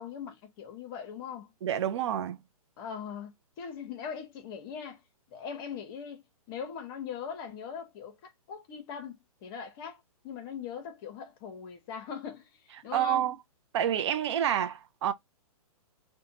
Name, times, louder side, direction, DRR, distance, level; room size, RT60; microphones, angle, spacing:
voice 1, 0.0-1.5 2.8-5.0 5.3-13.3, left 7 dB, 35° left, 0.9 m, -41 dB
voice 2, 1.6-2.4 12.9-13.3 13.7-15.1, right 10 dB, 50° right, 0.4 m, -28 dB
2.7 x 2.2 x 2.8 m
hypercardioid pair, 130°, 19 cm